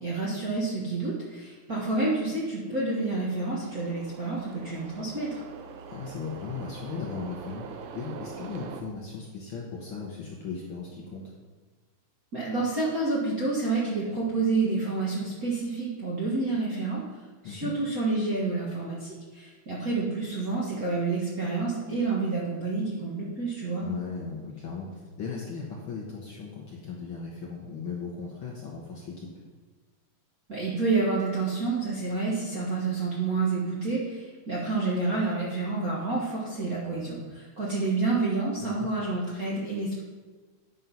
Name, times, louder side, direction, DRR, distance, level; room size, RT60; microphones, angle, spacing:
voice 1, 0.0-5.4 12.3-17.0 17.4-23.9 30.5-40.0, right 3 dB, 40° right, -5 dB, 1.3 m, -29 dB
sound 1, 2.7-8.8, right 6 dB, 80° right, 1.3 m, -43 dB
voice 2, 5.9-11.2 17.4-17.8 23.8-29.3 38.6-38.9, left 5 dB, 55° left, -3 dB, 1.6 m, -37 dB
9.3 x 5.5 x 5.6 m, 1.4 s
omnidirectional pair, 3.4 m